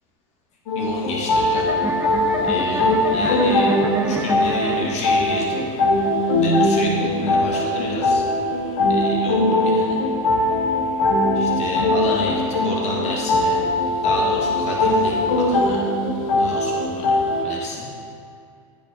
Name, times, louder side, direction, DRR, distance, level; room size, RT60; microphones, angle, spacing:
sound 1, 0.7-17.4, left 1 dB, 80° left, 1.5 m, -20 dB
voice 1, 0.7-1.7 2.4-3.7 4.0-5.6 6.4-8.2 8.9-10.0 11.3-13.6 14.0-15.8 16.4-17.9, left 2 dB, 40° left, -2 dB, 1.4 m, -30 dB
sound 2, 1.5-8.5, right 2 dB, 10° right, 0.5 m, -31 dB
9.4 x 4.1 x 4.5 m, 2.4 s
hypercardioid pair, 105°, 18 cm